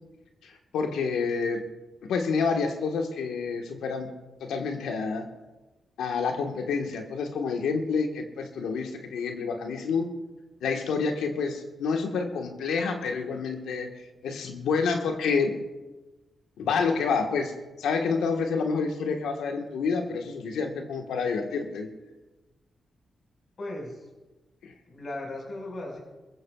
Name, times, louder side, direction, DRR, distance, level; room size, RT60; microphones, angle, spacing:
voice 1, 0.4-1.6 2.1-4.1 4.4-5.3 6.0-10.1 10.6-13.9 14.2-15.6 16.6-17.5 17.8-21.9 24.6-24.7, left 5 dB, 85° left, 3 dB, 1.5 m, -28 dB
voice 2, 23.6-24.0 24.9-26.0, left 1 dB, 55° left, 0 dB, 5.3 m, -36 dB
22.5 x 14.5 x 2.4 m, 1.1 s
supercardioid pair, 50°, 0 cm